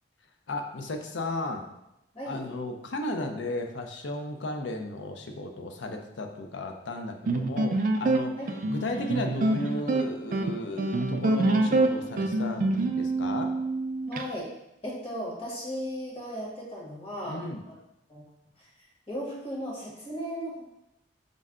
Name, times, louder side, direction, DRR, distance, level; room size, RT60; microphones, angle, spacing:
voice 1, 0.5-1.6 2.3-8.3 8.7-13.5 17.2-17.6, left 2 dB, 80° left, 4 dB, 0.5 m, -34 dB
sound 1, 7.3-14.2, right 2 dB, 45° right, 0.3 m, -26 dB
voice 2, 14.1-14.5 14.8-17.7 18.1-18.2 19.1-20.6, equal, 30° left, -5 dB, 1.3 m, -36 dB
5.2 x 2.2 x 3.6 m, 0.87 s
head